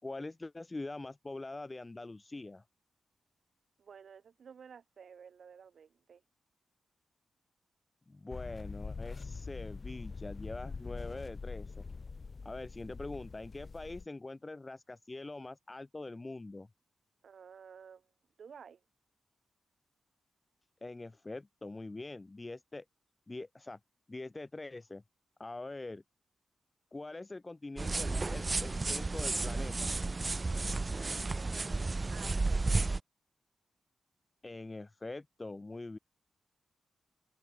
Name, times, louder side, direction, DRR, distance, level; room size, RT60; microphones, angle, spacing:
voice 1, 0.0-2.6 8.1-11.8 12.4-16.7 20.8-22.8 23.3-23.8 24.1-25.0 25.4-26.0 26.9-29.9 34.4-36.0, left 2 dB, 20° left, 2.9 m, -44 dB
voice 2, 3.8-6.2 17.2-18.1 18.4-18.8 31.4-32.7, right 7 dB, 60° right, 7.0 m, -53 dB
sound 1, 8.3-14.1, left 4 dB, 35° left, 2.2 m, -44 dB
sound 2, 27.8-33.0, right 3 dB, 25° right, 1.1 m, -32 dB
open air
wide cardioid pair, 135°, 0 cm